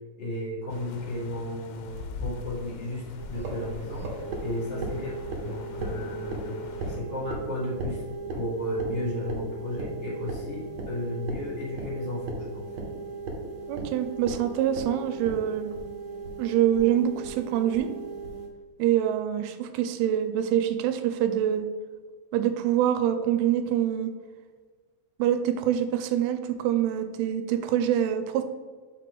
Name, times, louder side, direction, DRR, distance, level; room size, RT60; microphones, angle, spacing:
voice 1, 0.1-4.1 4.4-6.5 6.8-8.0 8.3-12.7, left 1 dB, 35° left, -8 dB, 0.9 m, -34 dB
sound 1, 0.7-7.0, left 4 dB, 85° left, 2.6 m, -42 dB
sound 2, 3.2-18.5, right 3 dB, 70° right, 1.7 m, -36 dB
voice 2, 13.7-15.7 16.4-17.9 18.8-21.7 22.3-24.1 25.2-28.4, right 10 dB, 85° right, 8 dB, 2.6 m, -25 dB
6.6 x 4.8 x 3.8 m, 1.6 s
omnidirectional pair, 4.5 m